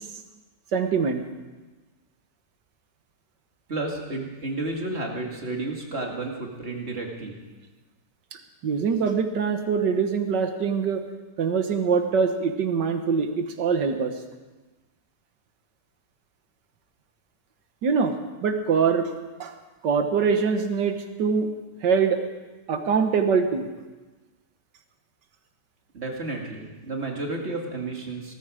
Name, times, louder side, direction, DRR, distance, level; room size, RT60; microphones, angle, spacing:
voice 1, 0.7-1.2 8.3-11.0 11.4-14.1 17.8-18.2 18.4-19.1 19.4-19.5 19.8-21.5 21.8-22.2 22.7-23.7, right 5 dB, 85° right, 7 dB, 1.9 m, -23 dB
voice 2, 3.7-7.4 25.9-28.3, right 2 dB, 40° right, 0 dB, 2.5 m, -32 dB
17.5 x 14.0 x 5.0 m, 1.2 s
omnidirectional pair, 1.8 m